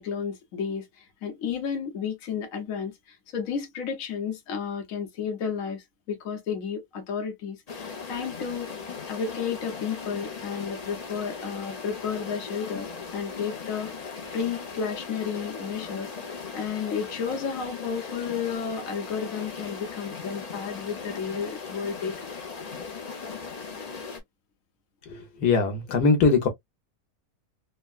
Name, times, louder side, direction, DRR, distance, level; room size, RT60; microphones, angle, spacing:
voice 1, 0.0-8.7 9.1-22.3, left 6 dB, 65° left, 1.3 m, -32 dB
sound 1, 7.7-24.2, left 5 dB, 45° left, 0.5 m, -38 dB
voice 2, 25.1-26.5, left 4 dB, 80° left, 1.4 m, -22 dB
3.5 x 2.2 x 2.3 m
omnidirectional pair, 1.6 m